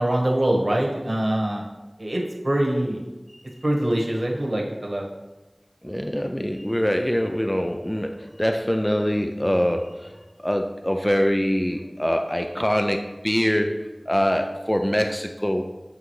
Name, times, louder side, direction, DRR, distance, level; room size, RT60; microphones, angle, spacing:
voice 1, 0.0-1.6 2.0-3.0 3.6-5.0, right 1 dB, 55° right, -1 dB, 1.3 m, -23 dB
voice 2, 5.8-15.6, equal, 15° left, 4 dB, 0.4 m, -24 dB
8.9 x 3.6 x 3.1 m, 1.1 s
wide cardioid pair, 45°, 0 cm